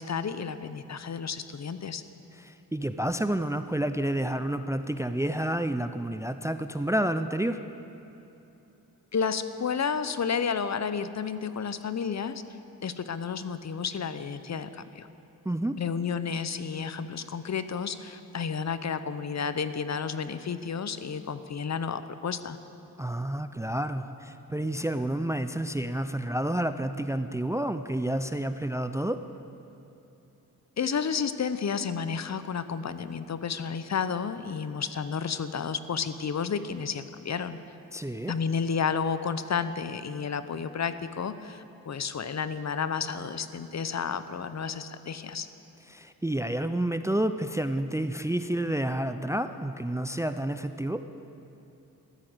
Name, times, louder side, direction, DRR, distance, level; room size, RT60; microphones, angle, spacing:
voice 1, 0.0-2.0 9.1-12.4 12.8-15.1 15.8-22.6 30.8-37.6 38.3-45.5, left 6 dB, 45° left, 12 dB, 0.8 m, -31 dB
voice 2, 2.4-7.6 15.4-15.8 23.0-29.2 37.9-38.3 45.9-51.0, right 1 dB, 10° right, 10 dB, 0.5 m, -29 dB
14.0 x 13.0 x 8.0 m, 3.0 s
cardioid pair, 75°, 37 cm